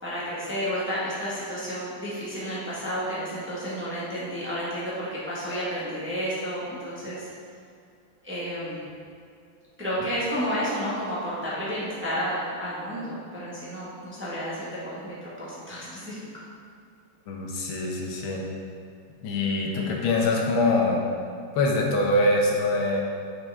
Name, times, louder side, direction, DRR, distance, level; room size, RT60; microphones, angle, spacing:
voice 1, 0.0-7.3 8.2-8.8 9.8-16.2, equal, 5° right, -8 dB, 1.1 m, -31 dB
voice 2, 17.3-18.4 19.2-21.1 21.5-23.0, left 2 dB, 80° left, 0 dB, 1.7 m, -24 dB
6.6 x 5.9 x 3.5 m, 2.3 s
omnidirectional pair, 2.2 m